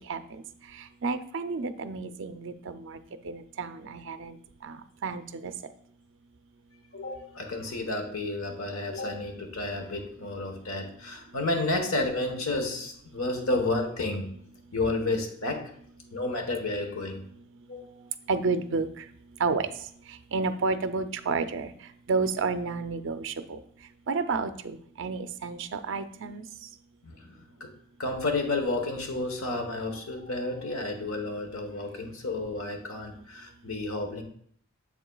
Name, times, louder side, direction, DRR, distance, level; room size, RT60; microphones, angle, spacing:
voice 1, 1.0-3.0 3.2-4.4 4.6-4.8 5.0-5.5 18.3-19.0 19.4-19.7 20.3-21.7 22.1-23.6 24.1-26.4, right 4 dB, 65° right, 9 dB, 0.5 m, -30 dB
voice 2, 6.9-14.3 14.7-15.7 16.1-17.2 17.7-18.1 19.4-19.6 27.0-27.7 28.0-34.2, left 2 dB, 85° left, 4 dB, 1.2 m, -31 dB
7.5 x 6.9 x 2.3 m, 0.62 s
head